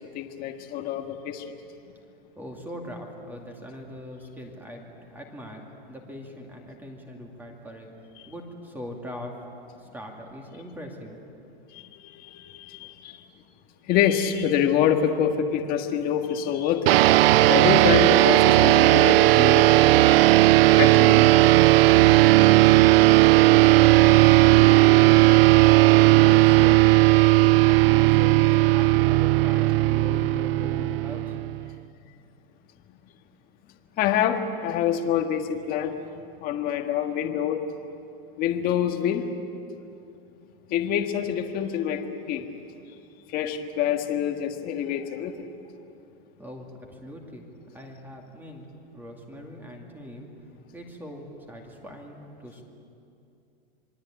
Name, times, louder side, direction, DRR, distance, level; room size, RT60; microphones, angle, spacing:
voice 1, 0.1-1.4 11.7-13.2 13.9-16.9 17.5-19.7 20.8-21.1 34.0-36.0 36.4-37.6 38.4-39.2 40.7-42.5 43.3-45.5, left 9 dB, 30° left, 5 dB, 1.6 m, -26 dB
voice 2, 2.4-7.9 8.3-9.3 9.8-11.2 20.2-21.5 22.0-23.1 23.4-25.7 26.1-26.8 27.2-31.4 46.4-47.5 47.7-48.7 48.9-50.3 50.7-52.6, equal, 5° right, 1 dB, 2.4 m, -41 dB
sound 1, 16.9-31.7, right 18 dB, 75° right, 0.6 m, -16 dB
27.5 x 22.0 x 9.1 m, 2.6 s
supercardioid pair, 160°, 30 cm